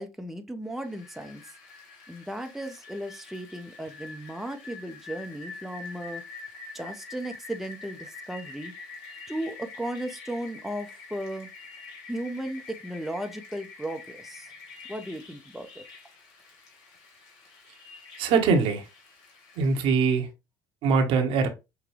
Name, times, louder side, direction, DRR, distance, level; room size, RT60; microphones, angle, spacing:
voice 1, 0.0-1.4 2.1-6.2 6.7-8.7 9.3-11.5 12.1-14.5 14.9-15.8, right 1 dB, 5° right, 0.6 m, -36 dB
Rain, 0.7-20.2, left 4 dB, 65° left, 1.6 m, -46 dB
voice 2, 18.2-18.9 19.6-20.3 20.8-21.5, right 5 dB, 65° right, 1.0 m, -22 dB
5.8 x 2.2 x 3.1 m
hypercardioid pair, 70°, 10 cm